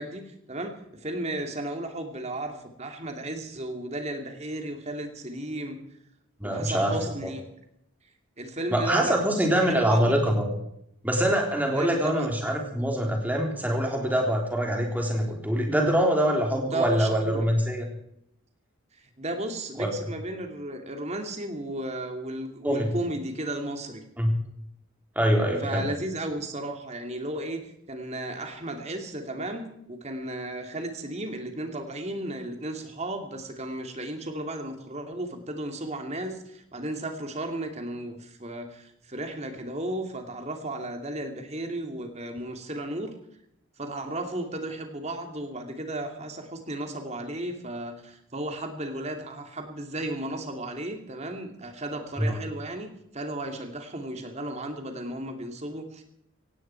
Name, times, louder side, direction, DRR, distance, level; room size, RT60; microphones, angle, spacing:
voice 1, 0.0-5.8 6.4-7.5 8.4-10.2 11.7-12.3 16.7-17.5 18.9-24.0 25.6-43.1 43.8-56.0, right 1 dB, 30° right, 5 dB, 2.6 m, -34 dB
voice 2, 6.4-7.3 8.7-10.4 11.0-17.9 19.8-19.9 22.6-22.9 24.2-24.3 25.2-25.9 52.2-52.4, equal, 10° right, 1 dB, 3.7 m, -24 dB
18.0 x 16.0 x 4.6 m, 0.75 s
head